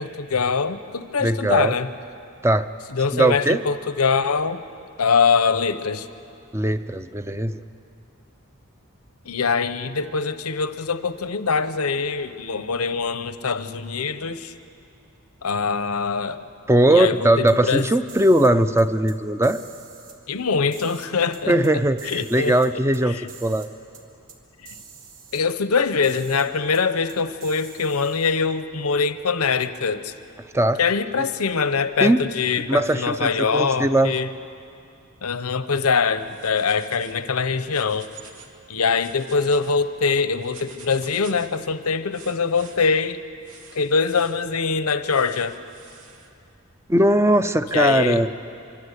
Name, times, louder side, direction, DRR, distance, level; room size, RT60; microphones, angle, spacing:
voice 1, 0.0-1.9 2.9-4.6 5.0-6.1 9.2-14.5 15.4-16.4 16.9-17.9 20.3-21.6 22.1-22.5 23.1-23.2 24.6-24.8 25.3-30.1 30.8-34.3 35.2-38.1 38.7-43.2 43.7-45.6 47.7-48.2, left 5 dB, 90° left, 12 dB, 0.9 m, -23 dB
voice 2, 1.2-1.8 2.4-2.7 3.1-3.6 6.5-7.6 16.7-19.6 21.5-23.7 30.5-30.8 31.2-31.3 32.0-32.2 32.7-34.1 46.9-48.3, right 1 dB, 10° right, 11 dB, 0.6 m, -19 dB
sound 1, 17.5-18.5 18.8-19.1 19.4-20.2 20.7-21.7 22.0-23.0 23.3-23.7 23.9-24.0 24.3-24.4 24.6-25.4 26.0-26.5 26.7-26.8 27.1-28.4, right 7 dB, 65° right, 2.6 m, -45 dB
sound 2, 36.2-37.2 37.6-38.5 38.9-39.7 40.4-41.6 42.1-42.8 43.4-44.4 45.1-46.3, right 5 dB, 90° right, 2.2 m, -47 dB
24.5 x 24.0 x 8.3 m, 2.6 s
head